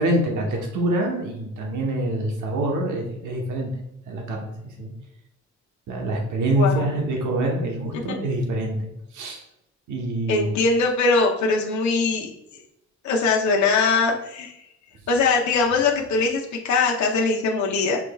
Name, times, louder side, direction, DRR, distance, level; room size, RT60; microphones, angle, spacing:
voice 1, 0.0-3.7 4.1-4.9 5.9-9.4 9.9-10.5, right 1 dB, 75° right, 1 dB, 1.1 m, -25 dB
voice 2, 6.5-7.0 10.3-12.3 13.0-14.5 15.1-18.0, left 4 dB, 70° left, -1 dB, 0.8 m, -21 dB
5.9 x 3.1 x 2.3 m, 0.83 s
cardioid pair, 90°, 30 cm